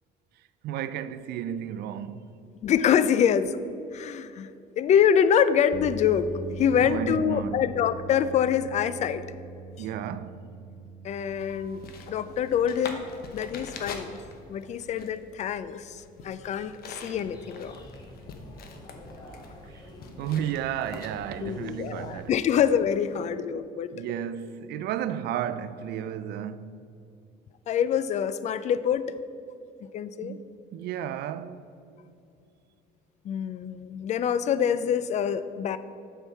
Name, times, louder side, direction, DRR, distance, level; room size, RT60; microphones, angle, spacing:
voice 1, 0.6-2.4 6.8-7.7 9.8-10.5 20.2-22.3 23.9-26.7 30.2-31.7, right 9 dB, 75° right, 0.4 m, -33 dB
voice 2, 2.6-3.6 3.9-4.5 4.8-9.2 9.8-9.9 11.0-14.2 14.5-17.7 21.4-23.9 27.7-29.2 29.9-30.4 33.2-35.8, left 8 dB, 45° left, 0.4 m, -25 dB
sound 1, 5.7-20.0, right 4 dB, 25° right, 0.7 m, -44 dB
sound 2, 11.1-21.4, left 5 dB, 65° left, 0.9 m, -45 dB
sound 3, 17.0-22.5, left 1 dB, 25° left, 1.4 m, -48 dB
7.8 x 4.6 x 5.8 m
cardioid pair, 110°, 17 cm